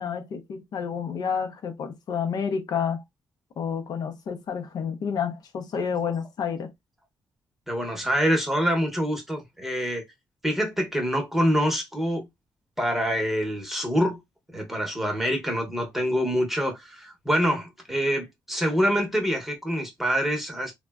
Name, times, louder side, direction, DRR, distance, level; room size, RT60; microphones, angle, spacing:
voice 1, 0.0-3.0 3.6-6.7, left 7 dB, 65° left, 0.5 m, -29 dB
voice 2, 7.7-10.0 10.4-12.3 12.8-14.2 14.5-20.7, equal, 5° right, 0.8 m, -25 dB
3.5 x 2.1 x 2.3 m
wide cardioid pair, 160°, 7 cm